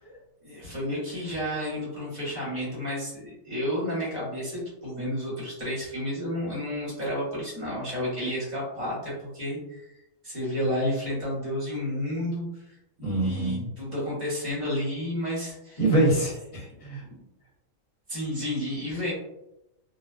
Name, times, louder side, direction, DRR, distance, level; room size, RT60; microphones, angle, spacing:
voice 1, 0.4-9.9 10.2-15.8 17.0-17.2 18.1-19.1, equal, 35° right, -7 dB, 1.1 m, -31 dB
voice 2, 13.0-13.7 15.8-17.0, right 1 dB, 30° left, -5 dB, 0.8 m, -25 dB
2.4 x 2.2 x 2.3 m, 0.87 s
omnidirectional pair, 1.3 m